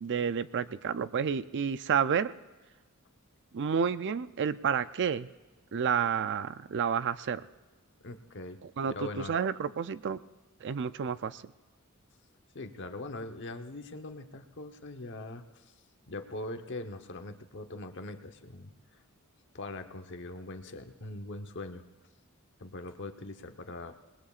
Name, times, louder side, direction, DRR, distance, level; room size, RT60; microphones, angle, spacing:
voice 1, 0.0-2.3 3.5-5.3 5.7-7.4 8.8-10.2 10.6-11.4, right 7 dB, 55° right, 14 dB, 0.4 m, -30 dB
voice 2, 8.0-8.6 8.9-9.4 12.5-15.7 16.1-19.0 19.5-21.8 22.6-23.9, left 2 dB, 55° left, 6 dB, 1.0 m, -42 dB
27.5 x 20.0 x 2.5 m, 1.2 s
head